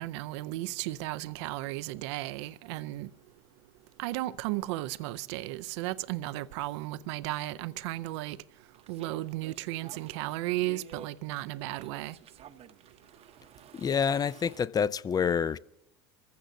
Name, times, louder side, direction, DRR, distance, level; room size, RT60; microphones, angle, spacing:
voice 1, 0.0-3.1 4.0-8.4 8.9-12.2, right 17 dB, 75° right, 0.5 m, -34 dB
sound 1, 8.7-14.7, right 8 dB, 45° right, 0.8 m, -50 dB
voice 2, 13.7-15.6, left 7 dB, 25° left, 0.4 m, -27 dB
26.0 x 15.0 x 2.6 m
hypercardioid pair, 90°, 15 cm